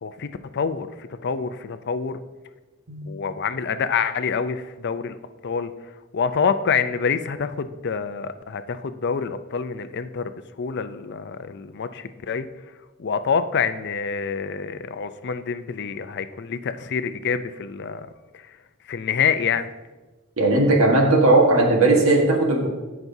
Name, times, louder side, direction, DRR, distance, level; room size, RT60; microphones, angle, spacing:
voice 1, 0.0-2.2 3.1-5.2 5.4-12.5 13.0-18.1 18.3-18.6 18.8-19.7, left 6 dB, 55° left, 11 dB, 0.5 m, -27 dB
voice 2, 20.4-22.7, right 2 dB, 75° right, 0 dB, 1.5 m, -17 dB
17.0 x 6.0 x 2.7 m, 1.2 s
head